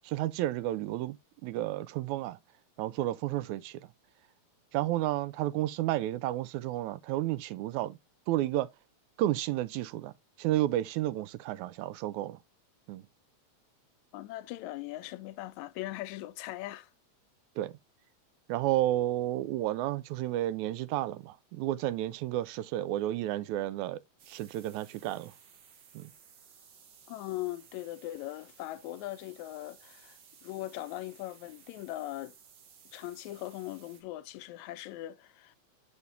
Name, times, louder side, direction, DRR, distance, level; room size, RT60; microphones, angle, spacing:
voice 1, 0.0-1.2 1.4-2.4 2.8-3.8 4.7-8.0 8.3-8.7 9.2-10.1 10.4-12.4 12.9-13.0 17.6-17.7 18.5-24.0 24.3-25.3 25.9-26.1, right 14 dB, 85° right, 1.9 m, -31 dB
voice 2, 14.1-16.9 27.1-32.3 32.9-35.6, left 16 dB, 80° left, 1.9 m, -40 dB
sound 1, 24.2-34.0, right 7 dB, 65° right, 1.1 m, -58 dB
7.1 x 6.6 x 2.6 m
omnidirectional pair, 3.4 m